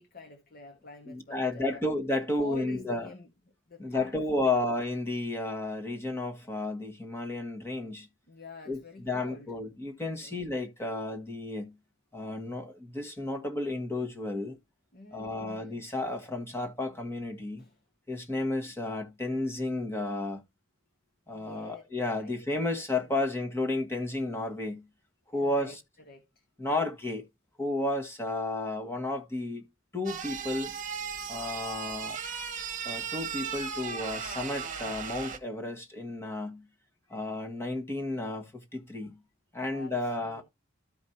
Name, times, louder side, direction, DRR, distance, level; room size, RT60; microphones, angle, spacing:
voice 1, 0.0-1.8 2.3-3.3 3.7-4.5 8.3-9.5 10.2-10.4 14.9-15.8 17.6-17.8 21.3-21.8 22.2-23.4 25.4-25.8 26.1-26.4 39.7-40.4, left 2 dB, 50° left, 1.5 m, -47 dB
voice 2, 1.0-3.1 3.8-8.1 8.7-11.8 12.1-14.6 15.1-17.6 18.1-20.4 21.3-24.9 25.3-25.8 26.6-27.2 27.6-29.7 29.9-30.7 31.3-32.2 32.8-36.7 37.1-39.2 39.5-40.4, left 2 dB, 15° left, 1.4 m, -32 dB
sound 1, 30.1-35.4, right 6 dB, 45° right, 1.2 m, -36 dB
13.5 x 5.2 x 2.7 m
head